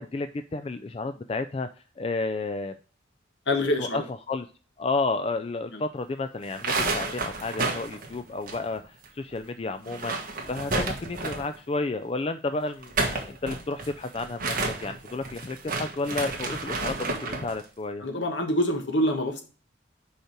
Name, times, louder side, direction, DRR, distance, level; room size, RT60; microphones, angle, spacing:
voice 1, 0.0-1.7 2.0-2.8 3.8-4.0 4.3-4.4 4.8-14.6 14.8-18.0, left 3 dB, 30° left, 9 dB, 0.3 m, -31 dB
voice 2, 3.5-4.0 5.7-5.8 18.0-19.4, left 1 dB, 70° left, 5 dB, 1.4 m, -26 dB
sound 1, 6.4-9.1 9.3-9.4 9.8-11.6 12.7-17.5, right 3 dB, 45° right, 1.5 m, -31 dB
5.4 x 5.0 x 5.9 m, 0.36 s
head